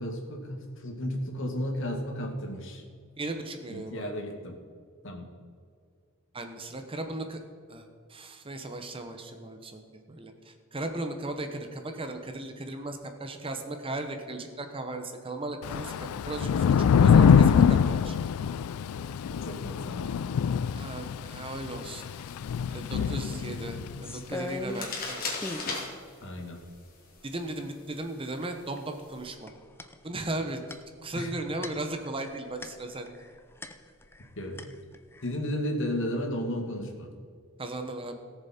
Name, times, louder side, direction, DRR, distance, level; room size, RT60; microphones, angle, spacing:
voice 1, 0.0-2.8 3.7-4.5 5.0-5.3 18.9-20.2 23.8-23.9 26.2-26.6 31.1-31.3 34.4-34.6 35.2-37.1, equal, 60° left, 2 dB, 1.8 m, -34 dB
voice 2, 3.2-4.2 6.3-7.4 7.7-18.2 20.7-22.0 22.7-25.2 27.2-29.5 30.0-30.6 31.0-33.1 37.6-38.2, right 2 dB, 25° right, 6 dB, 0.9 m, -37 dB
Thunder / Rain, 15.6-24.0, left 7 dB, 80° left, 0.3 m, -24 dB
Newspaper On Table, 21.8-29.3, left 3 dB, 40° left, 2.5 m, -41 dB
sound 1, 24.0-25.0 25.3-25.7 26.3-26.4 26.6-27.3 28.4-28.8 29.1-34.3 34.6-35.3, left 2 dB, 10° left, 0.6 m, -40 dB
17.5 x 7.1 x 4.3 m, 2.2 s
head